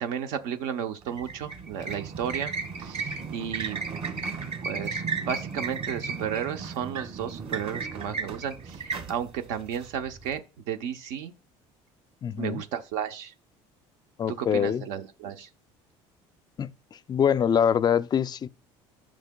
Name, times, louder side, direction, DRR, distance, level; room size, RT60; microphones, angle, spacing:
voice 1, 0.0-3.8 4.6-11.3 12.4-13.3 14.3-15.5, right 8 dB, 80° right, 0.8 m, -33 dB
sound 1, 1.0-10.3, right 5 dB, 50° right, 1.8 m, -34 dB
voice 2, 12.2-12.6 14.2-14.8 16.6-18.5, left 8 dB, 30° left, 0.4 m, -24 dB
11.5 x 6.3 x 2.3 m
supercardioid pair, 95°, 13 cm